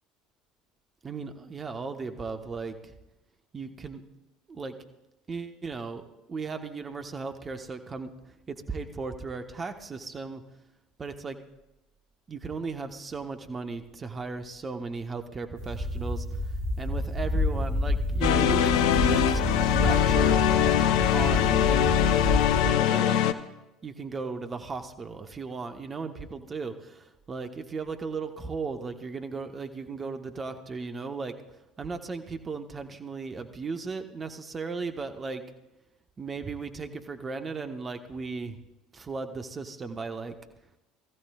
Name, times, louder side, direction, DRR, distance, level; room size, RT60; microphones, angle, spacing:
voice 1, 1.0-2.9 3.5-4.0 4.5-4.7 5.3-10.4 11.0-11.4 12.3-20.4 21.1-22.0 22.6-23.2 23.8-31.4 31.8-35.4 36.2-38.6 38.9-40.3, right 4 dB, 25° right, 7 dB, 1.2 m, -36 dB
sound 1, 15.6-22.6, left 1 dB, 65° right, 2.4 m, -28 dB
sound 2, 18.2-23.3, left 11 dB, 60° left, 0.6 m, -23 dB
22.0 x 14.5 x 2.4 m, 0.97 s
figure-of-eight pair, 65°, 0 cm